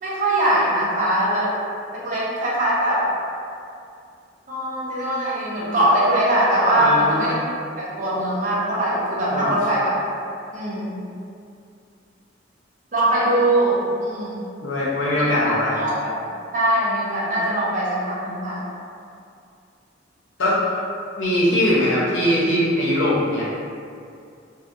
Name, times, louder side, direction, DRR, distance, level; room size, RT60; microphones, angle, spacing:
voice 1, 0.0-1.5 1.9-3.1 4.5-7.3 7.8-9.9 10.5-11.0 12.9-14.5 15.1-16.2 16.5-18.6, right 1 dB, 45° right, -7 dB, 0.6 m, -21 dB
voice 2, 6.7-7.3 9.3-9.5 14.6-15.8 20.4-20.6 21.2-23.5, left 1 dB, 90° left, -7 dB, 0.7 m, -21 dB
2.7 x 2.1 x 2.5 m, 2.5 s
head